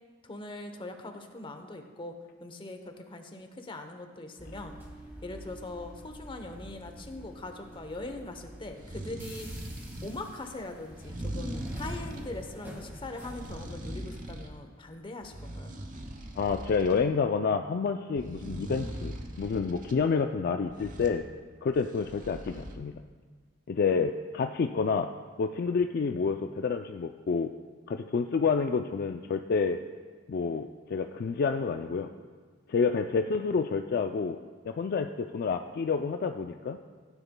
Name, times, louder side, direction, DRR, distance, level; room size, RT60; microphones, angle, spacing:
voice 1, 0.2-4.8 5.2-9.5 10.0-15.7, left 2 dB, 25° left, 6 dB, 0.8 m, -41 dB
sound 1, 4.4-13.8, equal, 10° right, 1.7 m, -45 dB
sound 2, 8.6-10.2 10.9-12.3 13.0-14.6 15.0-17.0 18.2-20.0 20.7-21.2 21.7-22.8, right 1 dB, 45° right, 1.0 m, -41 dB
voice 2, 16.4-21.3 21.6-23.0 23.7-25.1 25.4-27.5 27.9-29.8 30.3-32.1 32.7-34.4 34.7-36.8, left 5 dB, 50° left, 6 dB, 0.3 m, -29 dB
16.0 x 9.9 x 2.2 m, 1.5 s
head